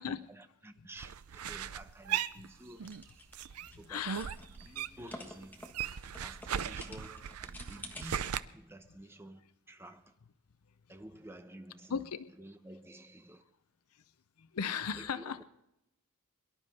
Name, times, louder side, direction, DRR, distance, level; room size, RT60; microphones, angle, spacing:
voice 1, 0.0-2.9 3.8-4.1 4.6-5.7 6.0-7.4 7.7-9.4 9.7-10.1 10.9-12.1 12.4-13.4 14.9-15.4, right 1 dB, 10° right, 0.8 m, -51 dB
sound 1, 1.0-3.0 3.3-5.2 5.4-8.4, right 9 dB, 85° right, 0.5 m, -38 dB
sound 2, 2.8-8.0, left 1 dB, 10° left, 1.4 m, -51 dB
voice 2, 3.9-4.3 4.7-4.8 11.9-12.3 14.4-15.4, left 7 dB, 90° left, 0.6 m, -36 dB
23.5 x 11.5 x 4.2 m
head